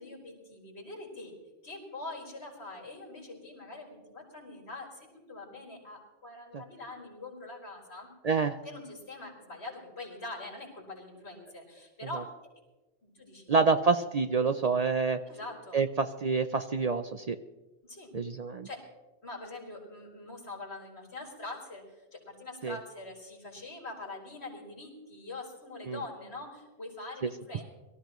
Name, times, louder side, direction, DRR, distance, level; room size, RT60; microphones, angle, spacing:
voice 1, 0.0-1.3 1.6-8.1 8.6-12.3 13.0-13.6 15.3-15.8 17.8-18.1 18.6-18.9 19.2-27.6, left 2 dB, 60° left, -3 dB, 4.6 m, -44 dB
voice 2, 8.2-8.6 13.5-15.2 15.7-17.4 18.1-18.7 22.6-22.8 25.9-26.0, right 4 dB, 50° right, 9 dB, 0.4 m, -27 dB
23.5 x 14.0 x 3.0 m, 1.1 s
omnidirectional pair, 1.2 m